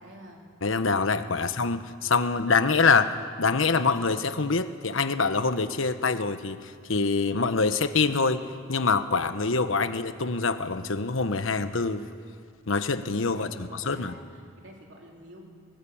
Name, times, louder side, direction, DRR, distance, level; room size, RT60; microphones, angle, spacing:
voice 1, 0.0-0.4 13.3-15.4, equal, 65° right, 0 dB, 3.7 m, -48 dB
voice 2, 0.6-12.1 12.7-14.1, left 4 dB, 90° left, 10 dB, 1.1 m, -25 dB
20.5 x 19.0 x 8.7 m, 2.2 s
head